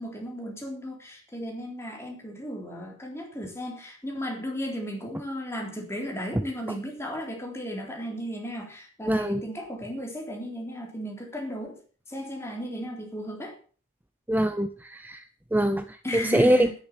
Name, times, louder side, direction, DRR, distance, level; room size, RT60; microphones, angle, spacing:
voice 1, 0.0-11.8 12.1-13.6 16.0-16.7, equal, 15° left, 1 dB, 3.6 m, -35 dB
voice 2, 9.1-9.4 14.3-15.2 15.5-16.7, right 1 dB, 10° right, 10 dB, 0.5 m, -23 dB
10.5 x 10.5 x 7.0 m, 0.40 s
head